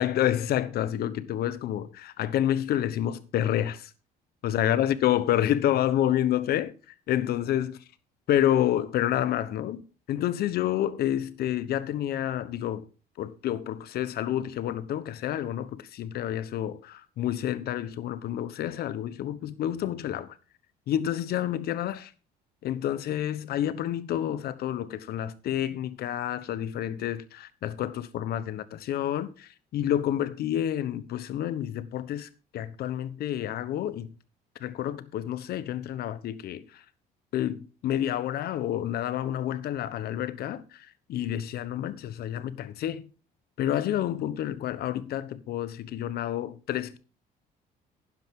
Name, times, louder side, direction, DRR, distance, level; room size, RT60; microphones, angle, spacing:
voice 1, 0.0-3.9 4.4-6.7 7.1-7.8 8.3-12.8 13.2-20.3 20.9-22.1 22.6-34.1 34.6-36.8 37.3-43.1 43.6-47.0, left 11 dB, 65° left, 1.0 m, -29 dB
12.0 x 10.0 x 3.7 m
cardioid pair, 110°, 17 cm